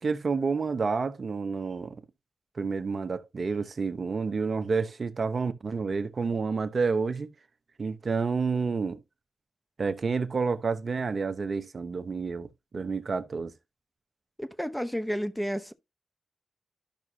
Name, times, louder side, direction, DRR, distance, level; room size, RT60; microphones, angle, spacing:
voice 1, 0.0-2.0 2.6-7.3 7.8-9.0 9.8-13.5, right 4 dB, 60° right, 1.0 m, -29 dB
voice 2, 14.4-15.7, equal, 5° left, 0.9 m, -31 dB
12.0 x 6.0 x 2.8 m
cardioid pair, 40°, 0 cm